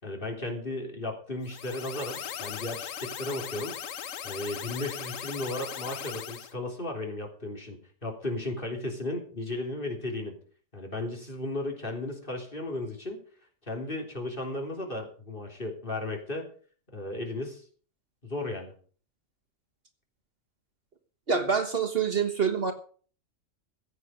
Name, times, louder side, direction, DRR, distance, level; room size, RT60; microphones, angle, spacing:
voice 1, 0.0-3.8 4.2-10.4 10.7-13.2 13.7-16.5 16.9-17.6 18.2-18.7, left 2 dB, 40° left, 2 dB, 3.6 m, -35 dB
sound 1, 1.4-6.5, left 9 dB, 75° left, 1.2 m, -39 dB
voice 2, 21.3-22.7, right 6 dB, 45° right, 6 dB, 1.5 m, -26 dB
15.5 x 7.9 x 6.5 m, 0.44 s
omnidirectional pair, 1.4 m